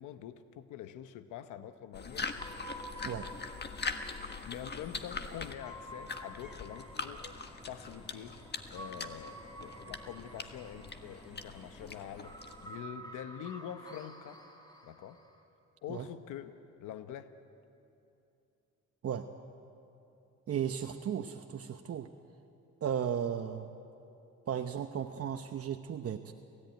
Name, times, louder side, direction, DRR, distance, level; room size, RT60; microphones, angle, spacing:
voice 1, 0.0-2.3 4.2-7.3 7.6-8.4 8.7-14.4 14.8-15.2 15.8-17.3, left 10 dB, 85° left, 10 dB, 1.0 m, -45 dB
sound 1, 1.9-12.8, left 4 dB, 35° left, 1.5 m, -42 dB
sound 2, 2.4-15.4, right 1 dB, 15° left, 4.1 m, -51 dB
sound 3, 5.6-12.3, right 1 dB, 5° right, 2.2 m, -56 dB
voice 2, 20.5-22.1 22.8-23.7 24.5-26.3, right 8 dB, 50° right, 6 dB, 1.0 m, -35 dB
30.0 x 14.5 x 9.2 m, 2.8 s
cardioid pair, 90°, 30 cm